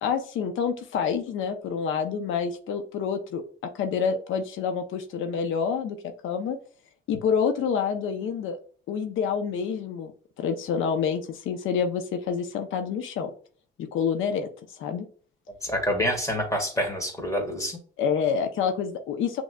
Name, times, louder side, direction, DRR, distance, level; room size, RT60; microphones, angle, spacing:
voice 1, 0.0-6.0 6.2-6.6 7.1-8.6 8.9-10.1 10.4-13.3 13.8-15.1 18.0-19.4, left 6 dB, 80° left, 6 dB, 0.6 m, -27 dB
voice 2, 15.6-17.8, equal, 15° left, 3 dB, 1.7 m, -27 dB
6.4 x 3.1 x 2.2 m, 0.43 s
cardioid pair, 90°, 20 cm